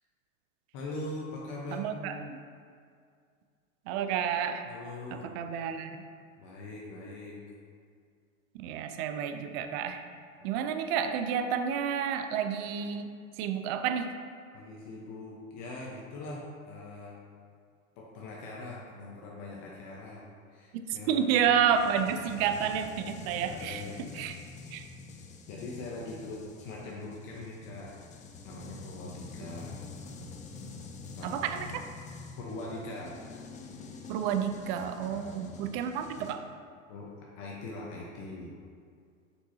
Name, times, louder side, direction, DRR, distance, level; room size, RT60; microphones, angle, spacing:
voice 1, 0.7-2.2 4.7-5.3 6.4-7.4 10.4-10.5 14.5-17.2 18.0-21.4 23.4-24.0 25.5-28.0 28.4-29.8 31.2-31.8 32.4-33.2 35.1-35.6 36.9-37.1 37.4-38.5, left 2 dB, 45° left, -3 dB, 1.1 m, -42 dB
voice 2, 1.7-2.4 3.9-4.7 5.1-6.0 8.5-10.0 10.4-13.1 13.4-14.1 20.7-24.4 24.7-24.9 29.4-29.5 31.2-31.8 34.1-36.5, right 8 dB, 50° right, 8 dB, 0.6 m, -30 dB
sound 1, 21.7-36.4, left 4 dB, 20° left, 0.5 m, -46 dB
6.3 x 6.0 x 2.8 m, 2.2 s
hypercardioid pair, 100°, 41 cm